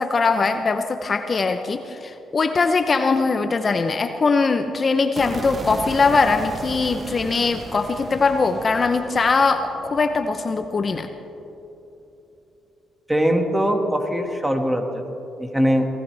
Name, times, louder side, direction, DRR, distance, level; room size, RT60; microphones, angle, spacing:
voice 1, 0.0-11.1, left 4 dB, 40° left, 7 dB, 0.7 m, -21 dB
sound 1, 5.2-11.4, right 3 dB, 40° right, 1.0 m, -36 dB
voice 2, 13.1-15.0 15.4-15.9, equal, 10° right, 4 dB, 1.9 m, -21 dB
21.5 x 17.0 x 3.4 m, 3.0 s
supercardioid pair, 70°, 0 cm